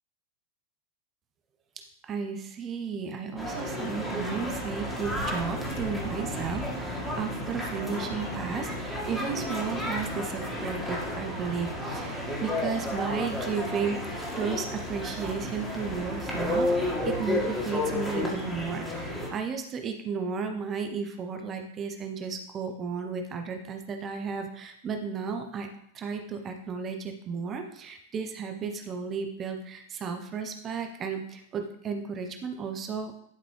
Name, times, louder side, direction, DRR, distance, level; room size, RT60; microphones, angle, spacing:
voice 1, 2.0-25.7 25.9-33.2, right 5 dB, 25° right, 5 dB, 1.1 m, -34 dB
sound 1, 3.4-19.3, left 1 dB, 5° left, 2.1 m, -32 dB
11.5 x 5.7 x 3.4 m, 0.72 s
figure-of-eight pair, 90°, 0 cm